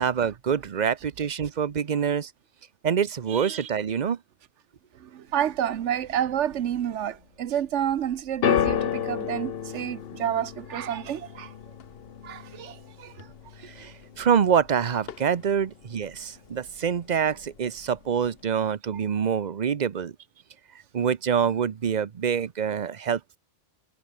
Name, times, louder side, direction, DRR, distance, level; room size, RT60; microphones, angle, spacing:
voice 1, 0.0-2.3 2.8-4.2 13.6-20.1 20.9-23.4, right 7 dB, 40° right, 0.7 m, -26 dB
voice 2, 3.3-3.7 5.0-11.5 12.2-13.1, right 10 dB, 75° right, 1.1 m, -29 dB
sound 1, 5.2-18.5, left 3 dB, 85° left, 4.2 m, -57 dB
sound 2, 8.4-14.7 15.0-15.6 16.4-16.5, left 8 dB, 55° left, 1.0 m, -31 dB
omnidirectional pair, 1.3 m